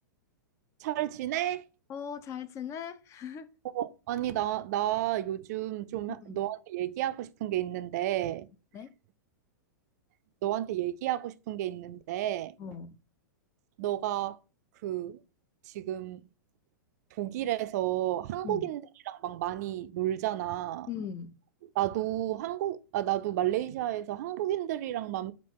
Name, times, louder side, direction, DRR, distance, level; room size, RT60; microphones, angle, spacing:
voice 1, 0.8-1.6 3.7-8.5 10.4-12.5 13.8-14.4 14.8-15.2 15.7-16.2 17.2-20.9 21.8-25.3, right 13 dB, 55° right, 0.3 m, -31 dB
voice 2, 1.9-3.5 6.2-6.4 8.7-8.9 12.6-13.0 18.4-18.7 20.9-21.3, left 7 dB, 30° left, 0.4 m, -39 dB
4.5 x 2.4 x 3.5 m
hypercardioid pair, 110°, 11 cm